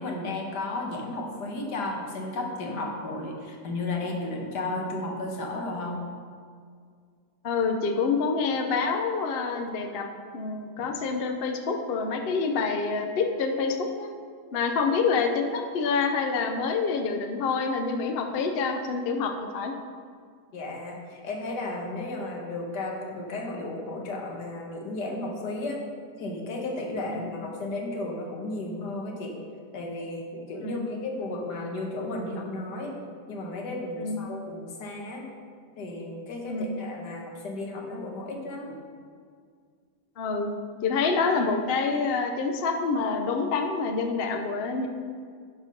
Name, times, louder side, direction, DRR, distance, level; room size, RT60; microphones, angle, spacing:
voice 1, 0.0-6.0 20.5-25.8 26.2-29.4 29.7-33.0 33.3-35.3 35.8-38.8, left 2 dB, 80° left, 0 dB, 1.8 m, -34 dB
voice 2, 7.4-10.1 10.3-14.1 14.5-19.7 27.2-27.3 30.6-30.9 34.0-34.2 36.5-36.8 40.2-40.5 40.8-44.9, left 4 dB, 55° left, 5 dB, 0.7 m, -27 dB
11.0 x 4.3 x 5.3 m, 2.1 s
omnidirectional pair, 1.8 m